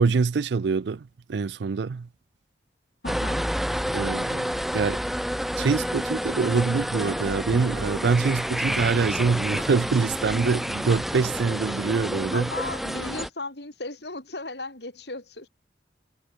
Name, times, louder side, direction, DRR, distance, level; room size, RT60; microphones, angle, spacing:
voice 1, 0.0-2.1 3.9-5.0 5.6-12.5, right 4 dB, 75° right, 0.4 m, -25 dB
voice 2, 3.0-3.4 12.3-15.5, left 2 dB, 70° left, 4.9 m, -36 dB
sound 1, 3.1-13.3, equal, ahead, 2.0 m, -29 dB
sound 2, 7.5-13.0, equal, 35° left, 5.5 m, -48 dB
head